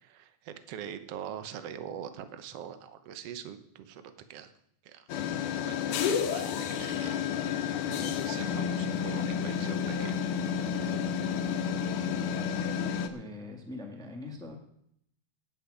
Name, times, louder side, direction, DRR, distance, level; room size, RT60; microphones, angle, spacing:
voice 1, 0.0-4.5 4.8-5.1 5.4-7.2 7.9-10.3, right 9 dB, 60° right, 10 dB, 1.8 m, -43 dB
sound 1, 5.1-13.1, left 7 dB, 75° left, 2.5 m, -31 dB
voice 2, 13.1-14.6, left 2 dB, ahead, 3 dB, 1.1 m, -42 dB
19.0 x 8.9 x 5.0 m, 0.73 s
omnidirectional pair, 3.7 m